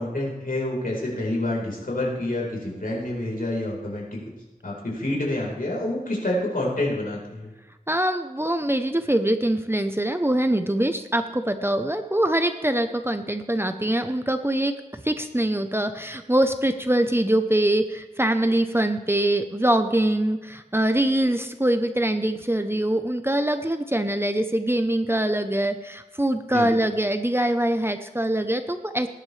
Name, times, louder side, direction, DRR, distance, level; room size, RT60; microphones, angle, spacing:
voice 1, 0.0-4.2 4.6-7.5 26.5-26.7, left 1 dB, 65° left, -3 dB, 4.3 m, -28 dB
voice 2, 7.9-29.1, right 1 dB, 15° right, 8 dB, 0.8 m, -23 dB
19.0 x 10.5 x 3.4 m, 1.1 s
wide cardioid pair, 45°, 16 cm